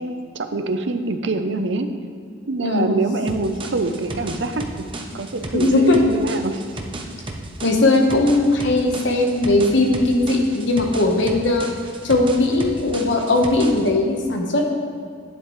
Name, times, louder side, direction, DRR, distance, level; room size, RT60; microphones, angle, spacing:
voice 1, 0.0-1.9 2.5-6.6, right 3 dB, 70° right, 8 dB, 0.6 m, -25 dB
voice 2, 2.6-3.0 5.5-6.0 7.6-11.7 12.0-14.6, left 2 dB, 70° left, 2 dB, 1.2 m, -18 dB
sound 1, 3.3-13.9, right 2 dB, 25° right, 0.8 m, -34 dB
11.0 x 9.5 x 3.2 m, 2.3 s
head